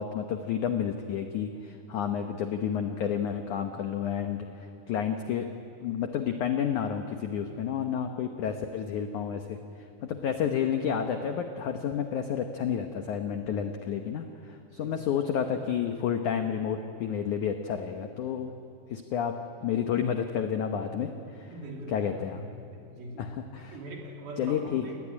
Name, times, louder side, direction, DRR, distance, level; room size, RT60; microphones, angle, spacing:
voice 1, 0.0-5.5 5.8-9.6 10.0-18.5 18.9-19.4 19.6-21.5 21.9-22.4 23.2-23.8 24.4-24.9, left 8 dB, 85° left, 6 dB, 1.7 m, -30 dB
voice 2, 21.5-23.3 23.7-24.9, right 1 dB, 60° right, 0 dB, 4.9 m, -42 dB
27.0 x 19.0 x 9.9 m, 2.6 s
omnidirectional pair, 5.0 m